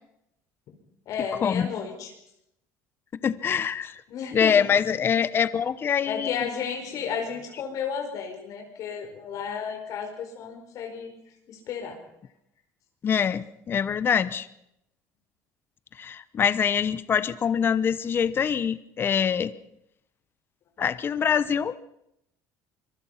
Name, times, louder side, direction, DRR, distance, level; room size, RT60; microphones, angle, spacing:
voice 1, 1.1-2.1 4.1-4.7 6.0-11.1 11.5-12.0, left 7 dB, 55° left, 3 dB, 4.7 m, -33 dB
voice 2, 3.2-4.0 4.3-6.5 13.0-14.5 16.0-19.5 20.8-21.7, left 7 dB, 35° left, 15 dB, 0.9 m, -24 dB
25.0 x 23.0 x 5.8 m, 0.80 s
cardioid pair, 125°, 7 cm